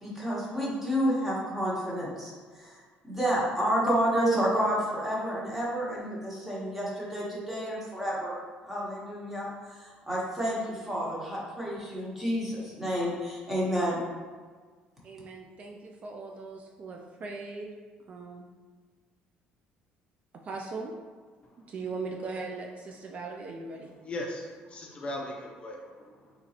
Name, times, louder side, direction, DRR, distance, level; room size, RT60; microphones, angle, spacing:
voice 1, 0.0-8.3 8.6-14.0, equal, 10° right, -6 dB, 1.2 m, -30 dB
voice 2, 15.0-17.7 18.1-18.4 20.4-20.9 21.6-23.9, right 3 dB, 45° right, 1 dB, 0.4 m, -39 dB
voice 3, 24.0-26.3, left 1 dB, 35° left, 0 dB, 0.5 m, -38 dB
3.8 x 3.0 x 2.8 m, 1.5 s
cardioid pair, 110°, 3 cm